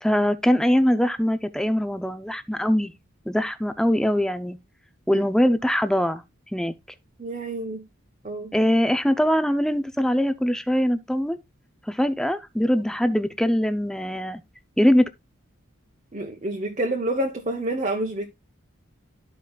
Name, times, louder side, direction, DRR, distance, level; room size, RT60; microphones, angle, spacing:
voice 1, 0.0-2.9 3.3-4.6 5.1-6.2 6.5-6.7 8.5-11.4 11.9-14.4 14.8-15.1, equal, 5° left, 0.5 m, -22 dB
voice 2, 7.2-7.8 8.2-8.5 16.1-18.3, right 1 dB, 30° right, 0.8 m, -28 dB
13.0 x 5.0 x 2.3 m
head